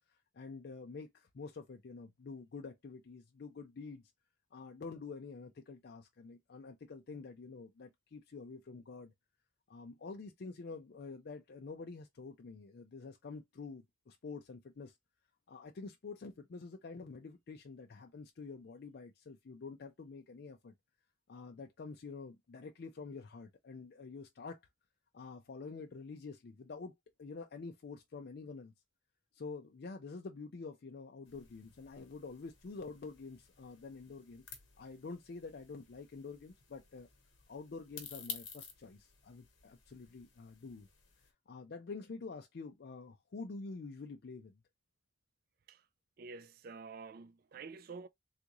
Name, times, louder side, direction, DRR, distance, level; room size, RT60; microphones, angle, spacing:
voice 1, 0.1-4.0 4.5-9.1 9.7-15.0 15.5-20.7 21.3-24.6 25.1-26.9 27.2-28.7 29.3-34.4 34.8-37.1 37.5-40.9 41.5-44.6, left 4 dB, 55° left, 0.4 m, -47 dB
sound 1, 31.3-41.3, left 7 dB, 70° left, 1.1 m, -53 dB
voice 2, 46.2-48.1, right 4 dB, 50° right, 0.3 m, -48 dB
3.5 x 2.5 x 2.9 m
head